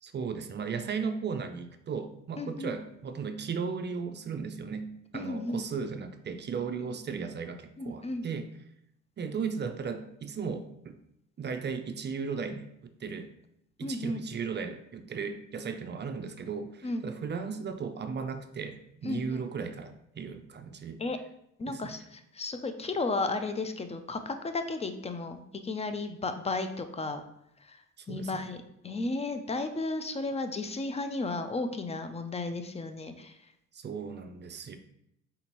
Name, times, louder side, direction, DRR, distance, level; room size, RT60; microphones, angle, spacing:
voice 1, 0.0-8.5 9.2-11.0 11.4-12.7 13.0-13.3 13.8-21.0 21.7-22.0 28.0-28.5 33.7-34.8, right 5 dB, 35° right, 8 dB, 0.4 m, -36 dB
voice 2, 2.4-2.7 5.1-5.7 7.8-8.3 13.8-14.2 16.8-17.0 19.0-19.4 21.0-21.2 21.6-27.2 27.7-27.8 28.1-33.4, left 3 dB, 20° left, 8 dB, 0.4 m, -34 dB
4.3 x 3.8 x 2.9 m, 0.77 s
cardioid pair, 90°, 30 cm